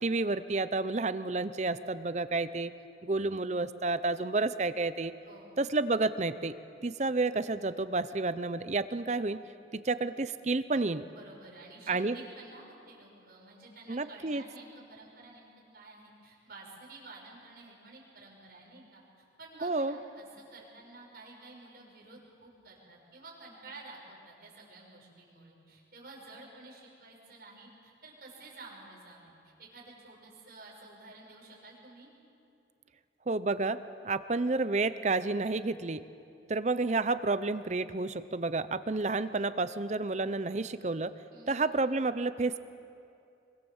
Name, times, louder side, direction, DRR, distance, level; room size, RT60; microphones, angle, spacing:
voice 1, 0.0-2.7 3.0-5.1 5.6-6.5 6.8-9.4 9.8-11.0 11.9-12.2 13.9-14.4 19.6-20.0 33.3-33.8 34.0-36.0 36.5-41.1 41.5-42.6, right 3 dB, 40° right, 13 dB, 0.6 m, -30 dB
voice 2, 11.1-15.5 15.7-32.1 41.3-41.6, right 3 dB, 55° right, -2 dB, 6.3 m, -51 dB
25.5 x 23.5 x 7.2 m, 2.6 s
head